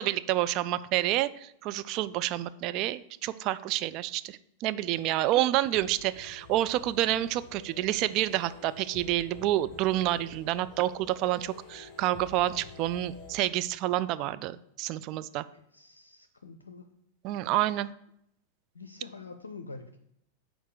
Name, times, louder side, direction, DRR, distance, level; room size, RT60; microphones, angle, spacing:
voice 1, 0.0-15.4 17.2-17.9, right 14 dB, 40° right, 14 dB, 0.3 m, -28 dB
sound 1, 4.9-13.4, left 4 dB, 30° left, 1.2 m, -50 dB
voice 2, 15.5-16.9 18.7-20.0, left 4 dB, 75° left, 8 dB, 0.5 m, -46 dB
6.5 x 4.5 x 6.6 m, 0.74 s
figure-of-eight pair, 90°, 0 cm